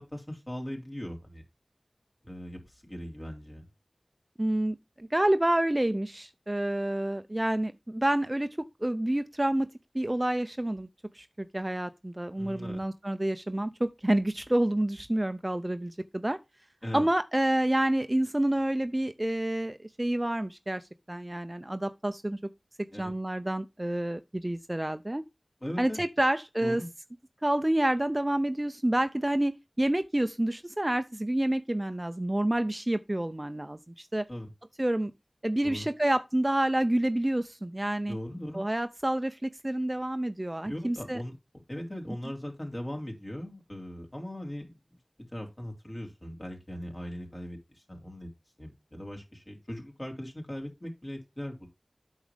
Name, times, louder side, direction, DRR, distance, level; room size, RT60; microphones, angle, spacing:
voice 1, 0.0-1.4 2.2-3.7 12.4-12.8 16.8-17.1 22.9-23.1 25.6-26.0 26.6-26.9 34.3-34.5 35.6-35.9 38.0-38.6 40.6-41.3 41.7-45.0 45.3-48.3 48.6-51.7, equal, 35° left, 3.3 m, -39 dB
voice 2, 4.4-9.7 9.9-10.9 11.1-16.4 16.9-22.4 23.0-25.2 25.8-26.8 27.4-34.3 34.8-35.1 35.4-38.2 38.5-41.2, right 1 dB, 25° right, 0.5 m, -28 dB
8.7 x 6.3 x 3.3 m
wide cardioid pair, 55°, 0 cm